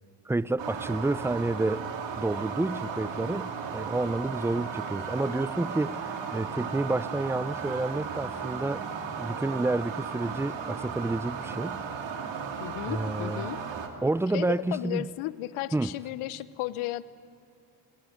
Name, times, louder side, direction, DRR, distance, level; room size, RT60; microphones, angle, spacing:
voice 1, 0.3-1.8 2.2-8.8 9.2-11.8 12.9-13.4 14.0-15.1 15.7-15.9, right 2 dB, 5° right, 18 dB, 0.5 m, -29 dB
sound 1, 0.6-13.9, right 6 dB, 60° right, 2.7 m, -35 dB
voice 2, 12.6-13.6 14.3-17.1, left 16 dB, 85° left, 16 dB, 0.9 m, -34 dB
23.0 x 19.0 x 9.3 m, 2.7 s
supercardioid pair, 75°, 49 cm